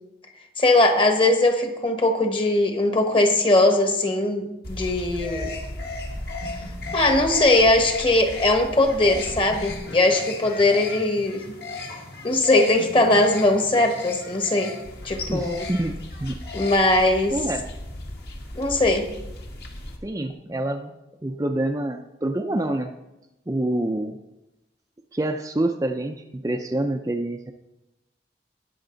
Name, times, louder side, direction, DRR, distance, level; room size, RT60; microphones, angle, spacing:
voice 1, 0.6-5.5 6.9-11.4 11.9-12.0 12.2-14.7 15.0-15.6 16.5-17.4 18.5-19.1, left 2 dB, 30° left, 5 dB, 1.3 m, -20 dB
sound 1, 4.6-20.0, left 2 dB, 60° left, 1.9 m, -35 dB
voice 2, 15.3-16.4 17.3-17.7 20.0-20.9 21.2-22.9 23.5-24.2 25.1-27.5, right 1 dB, 20° right, 4 dB, 0.5 m, -27 dB
19.0 x 6.6 x 3.9 m, 0.95 s
head